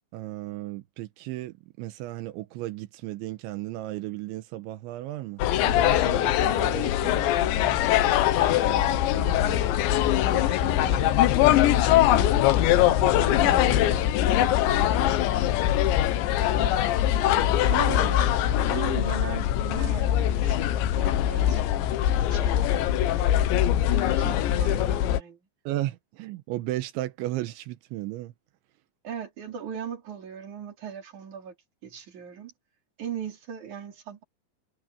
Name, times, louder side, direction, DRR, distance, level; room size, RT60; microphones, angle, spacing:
voice 1, 0.1-8.2 8.4-9.6 10.3-12.3 12.7-14.1 14.7-15.2 25.7-28.3, right 16 dB, 85° right, 3.4 m, -36 dB
sound 1, 5.4-25.2, left 12 dB, 90° left, 3.4 m, -22 dB
voice 2, 16.5-16.9 17.3-22.0 22.3-23.0 24.0-25.4 29.0-31.5 31.8-32.5 33.0-34.2, right 8 dB, 45° right, 4.6 m, -38 dB
omnidirectional pair, 5.2 m